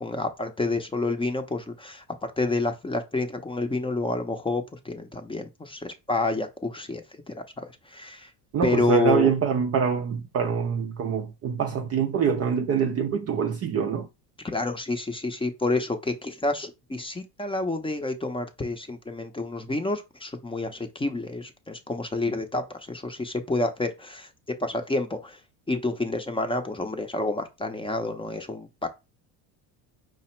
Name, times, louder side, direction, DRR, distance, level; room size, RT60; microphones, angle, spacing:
voice 1, 0.0-7.0 7.3-8.3 8.6-9.3 14.4-24.3 24.6-25.4 25.7-28.9, left 2 dB, 10° left, 0.6 m, -29 dB
voice 2, 8.5-14.1, right 7 dB, 35° right, 0.4 m, -25 dB
4.8 x 2.0 x 4.3 m
supercardioid pair, 105°, 46 cm